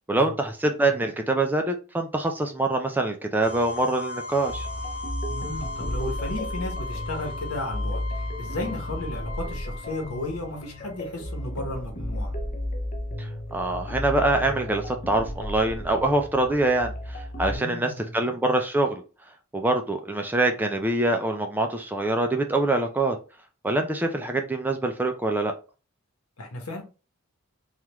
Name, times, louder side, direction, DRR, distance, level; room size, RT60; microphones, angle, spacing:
voice 1, 0.1-4.7 13.2-19.0 19.5-23.2 23.6-25.5, right 2 dB, 10° right, 0.3 m, -25 dB
sound 1, 3.4-11.2, left 3 dB, 55° left, 1.1 m, -38 dB
sound 2, 4.4-17.6, left 1 dB, 40° left, 0.6 m, -33 dB
voice 2, 5.3-12.3 17.5-18.2 26.4-26.8, left 1 dB, 75° left, 1.0 m, -34 dB
3.3 x 2.3 x 2.9 m
head